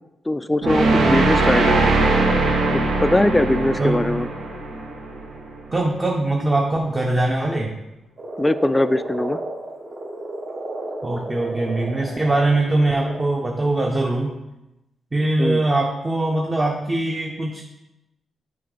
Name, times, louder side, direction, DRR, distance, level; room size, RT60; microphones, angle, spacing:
voice 1, 0.3-2.1 2.7-4.3 8.4-9.4 15.4-15.6, left 1 dB, 15° left, 12 dB, 0.3 m, -21 dB
sound 1, 0.6-5.7, right 2 dB, 80° right, 1.0 m, -20 dB
voice 2, 5.7-7.7 11.0-14.3 15.1-17.6, right 2 dB, 25° right, 0 dB, 0.8 m, -22 dB
Frog, 8.2-13.3, right 1 dB, 45° right, 1.1 m, -33 dB
7.5 x 4.3 x 4.0 m, 0.95 s
cardioid pair, 80°, 0 cm